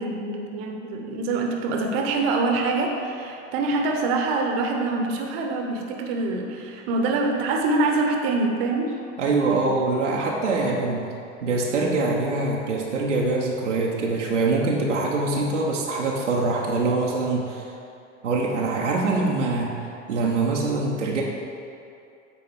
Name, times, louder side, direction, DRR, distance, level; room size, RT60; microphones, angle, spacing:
voice 1, 0.0-8.9, right 3 dB, 55° right, 2 dB, 1.0 m, -25 dB
voice 2, 9.2-11.1 11.4-17.7 18.2-19.7 20.1-21.2, right 3 dB, 85° right, -2 dB, 0.8 m, -24 dB
8.6 x 3.9 x 4.7 m, 2.6 s
figure-of-eight pair, 75°, 35 cm